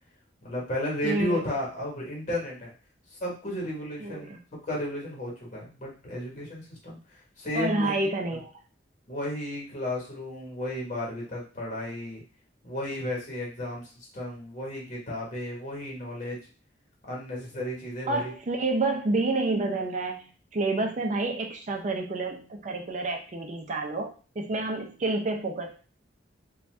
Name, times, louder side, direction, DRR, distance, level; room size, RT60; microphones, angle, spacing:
voice 1, 0.4-2.7 3.1-4.3 4.7-7.0 7.4-8.1 9.1-12.2 12.6-16.4 17.0-18.3, left 1 dB, 45° left, -2 dB, 1.1 m, -33 dB
voice 2, 1.0-1.5 4.0-4.4 7.5-8.5 18.1-25.8, right 2 dB, 40° right, 2 dB, 0.5 m, -29 dB
2.6 x 2.2 x 3.2 m, 0.36 s
head